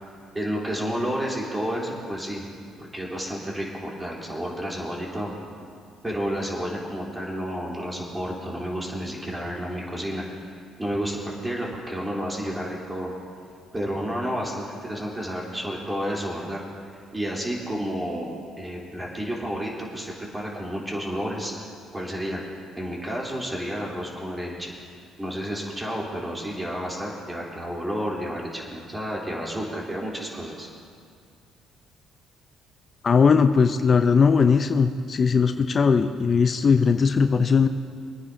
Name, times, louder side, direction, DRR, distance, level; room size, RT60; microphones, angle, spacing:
voice 1, 0.3-2.4 2.8-5.3 6.0-10.2 10.8-13.1 13.7-16.6 17.1-21.7 21.9-22.4 22.8-24.7 25.2-30.7, equal, 15° right, -3 dB, 3.6 m, -31 dB
voice 2, 33.0-37.7, left 5 dB, 45° left, 8 dB, 0.6 m, -19 dB
26.0 x 9.7 x 2.8 m, 2.3 s
hypercardioid pair, 60°, 0 cm